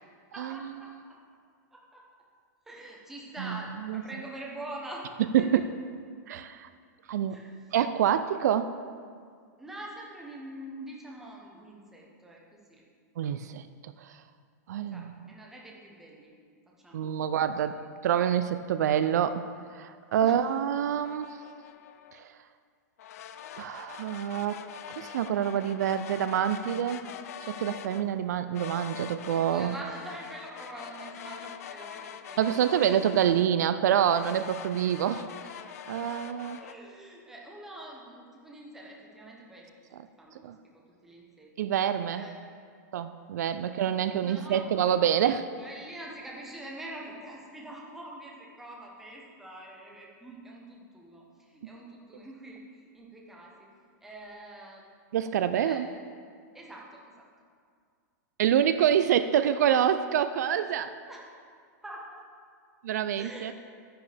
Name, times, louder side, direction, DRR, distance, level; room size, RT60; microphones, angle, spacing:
voice 1, 0.3-1.2 1.7-2.0 2.7-5.1 5.4-5.6 7.3-7.7 9.6-12.8 14.9-16.4 16.8-17.3 20.2-20.4 29.5-33.0 35.9-36.3 36.6-39.7 40.2-40.4 40.7-41.5 42.1-42.4 43.6-44.7 45.6-53.7 54.0-54.9 55.5-55.8 56.5-57.3 61.1-61.2 61.8-62.3 63.2-63.5, right 1 dB, 5° right, -2 dB, 0.9 m, -45 dB
voice 2, 6.3-6.7 7.1-7.4 7.7-8.7 13.2-14.1 14.7-15.1 16.9-17.8 18.0-19.4 19.7-21.4 22.1-22.2 23.6-24.6 25.0-27.1 27.4-29.7 32.4-35.6 35.9-36.6 40.4-40.6 41.6-42.2 42.9-45.4 55.1-55.8 58.4-60.9 62.8-63.5, right 9 dB, 65° right, 11 dB, 0.4 m, -26 dB
sound 1, 21.0-22.2 23.0-28.1 28.5-33.6 34.1-36.7, left 9 dB, 55° left, 0.5 m, -44 dB
10.5 x 10.0 x 3.4 m, 2.1 s
supercardioid pair, 175°, 10 cm